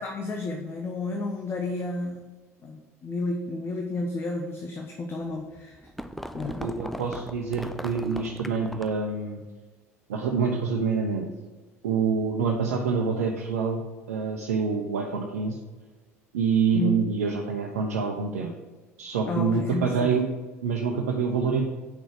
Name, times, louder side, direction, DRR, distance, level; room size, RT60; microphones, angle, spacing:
voice 1, 0.0-2.3 2.6-5.8 6.3-6.7 16.7-17.0 19.3-20.1, left 2 dB, 30° left, 2 dB, 1.2 m, -31 dB
sound 1, 5.3-9.1, equal, ahead, 0.5 m, -38 dB
voice 2, 6.6-9.4 10.1-11.3 11.8-13.8 14.1-15.6 16.3-18.5 19.0-20.2 20.6-21.6, right 5 dB, 70° right, 1 dB, 1.0 m, -26 dB
8.5 x 6.3 x 4.9 m, 1.3 s
figure-of-eight pair, 65°, 8 cm